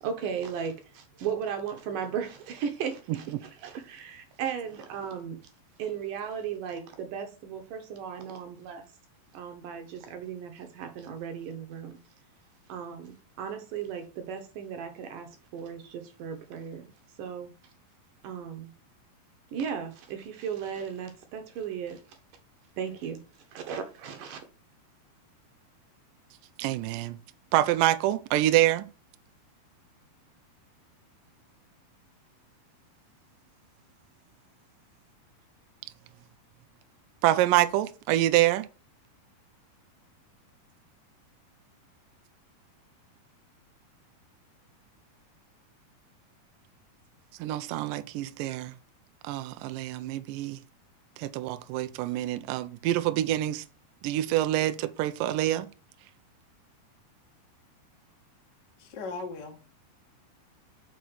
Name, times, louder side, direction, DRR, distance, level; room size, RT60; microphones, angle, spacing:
voice 1, 0.0-5.4 5.8-8.8 9.3-12.0 12.7-16.8 17.2-17.5 18.2-18.7 19.5-22.0 22.8-23.2 23.5-24.4, right 7 dB, 70° right, 2.2 m, -36 dB
voice 2, 26.6-27.2 27.5-28.9 37.2-38.7 47.4-48.7 49.2-50.6 51.2-53.6 54.0-55.7, right 14 dB, 85° right, 1.9 m, -26 dB
voice 3, 58.8-59.7, left 3 dB, 60° left, 1.0 m, -38 dB
6.4 x 4.1 x 6.0 m
omnidirectional pair, 4.5 m